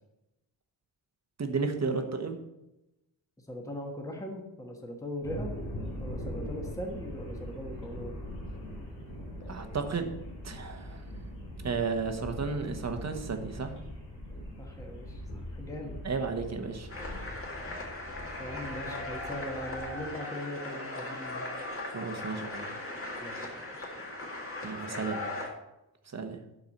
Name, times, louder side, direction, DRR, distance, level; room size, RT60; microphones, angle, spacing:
voice 1, 1.4-2.4 9.5-10.1 10.4-11.0 11.6-13.7 16.0-17.0 21.9-22.7 24.6-25.2 26.1-26.4, right 4 dB, 40° right, 5 dB, 1.3 m, -33 dB
voice 2, 3.5-5.5 6.0-8.2 14.6-16.0 17.6-18.1 18.4-21.5 23.2-24.0 24.9-25.1, equal, 10° left, 1 dB, 1.4 m, -40 dB
sound 1, 5.2-20.0, equal, 45° left, 4.3 m, -41 dB
sound 2, 16.9-25.5, left 2 dB, 30° left, 2.1 m, -38 dB
12.0 x 4.8 x 7.2 m, 0.93 s
wide cardioid pair, 165°, 42 cm